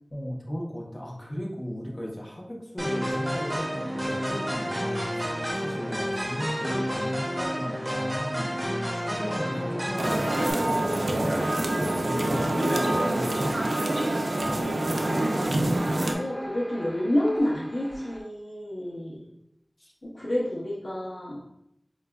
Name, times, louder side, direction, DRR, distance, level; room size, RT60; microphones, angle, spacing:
voice 1, 0.1-5.2 5.6-13.5 19.8-19.9, equal, 35° left, -2 dB, 0.8 m, -36 dB
sound 1, 2.8-10.5, equal, 25° right, 0.9 m, -30 dB
sound 2, 9.0-18.2, equal, 10° left, 0.5 m, -43 dB
sound 3, 10.0-16.1, right 1 dB, 85° right, 0.4 m, -26 dB
voice 2, 15.4-19.2 20.0-21.4, left 1 dB, 75° left, -4 dB, 0.6 m, -29 dB
4.6 x 2.3 x 2.2 m, 0.78 s
wide cardioid pair, 45°, 0 cm